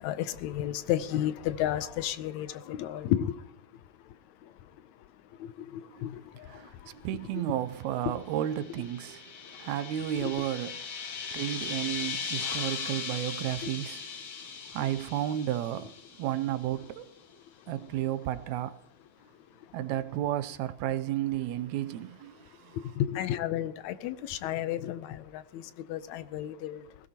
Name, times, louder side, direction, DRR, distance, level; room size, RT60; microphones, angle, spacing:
voice 1, 0.0-3.3 6.0-6.2 10.2-10.3 13.6-13.7 23.0-25.6 25.9-26.8, left 11 dB, 80° left, 2.0 m, -32 dB
voice 2, 6.5-10.8 11.2-14.0 14.7-17.1 17.7-18.8 19.7-22.8, right 12 dB, 80° right, 2.0 m, -33 dB
sound 1, 8.3-16.7, left 6 dB, 50° left, 1.9 m, -38 dB
20.0 x 16.5 x 2.9 m
omnidirectional pair, 3.3 m